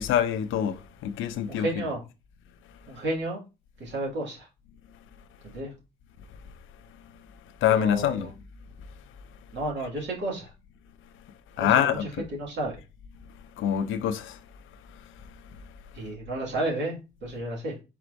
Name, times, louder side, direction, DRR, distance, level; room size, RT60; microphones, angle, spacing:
voice 1, 0.0-1.9 2.6-3.0 4.9-5.1 5.5-5.6 6.3-8.3 8.8-9.6 11.0-12.3 13.2-16.1, left 10 dB, 80° left, 0.6 m, -29 dB
voice 2, 1.5-2.0 2.9-3.4 3.8-4.5 5.4-5.7 7.7-8.1 9.5-10.5 11.6-11.9 12.4-12.7 15.9-17.7, right 1 dB, 65° right, 2.3 m, -32 dB
4.5 x 4.1 x 2.6 m
cardioid pair, 90°, 20 cm